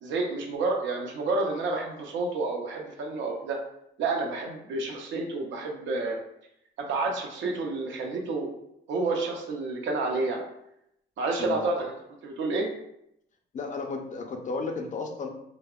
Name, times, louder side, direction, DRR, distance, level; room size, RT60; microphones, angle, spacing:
voice 1, 0.0-3.6 4.0-6.2 6.8-8.5 8.9-10.4 11.2-11.9 12.2-12.7, right 3 dB, 75° right, 1 dB, 0.5 m, -29 dB
voice 2, 13.5-15.3, left 4 dB, 40° left, 3 dB, 0.4 m, -33 dB
2.6 x 2.0 x 2.3 m, 0.79 s
cardioid pair, 90°, 20 cm